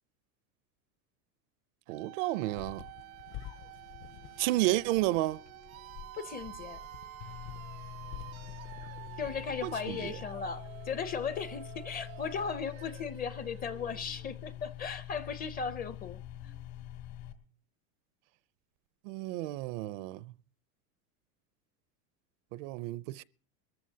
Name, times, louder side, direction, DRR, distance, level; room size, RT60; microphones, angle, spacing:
voice 1, 1.9-2.8 4.4-5.4 9.6-10.2 19.0-20.3 22.5-23.2, right 17 dB, 60° right, 0.5 m, -31 dB
sound 1, 1.9-14.7, right 16 dB, 80° right, 0.9 m, -49 dB
sound 2, 2.5-10.3, left 11 dB, 55° left, 0.8 m, -50 dB
voice 2, 6.1-6.8 9.2-16.2, left 6 dB, 20° left, 0.5 m, -37 dB
sound 3, 7.2-17.3, left 13 dB, 70° left, 2.6 m, -45 dB
21.5 x 14.0 x 2.8 m
supercardioid pair, 145°, 41 cm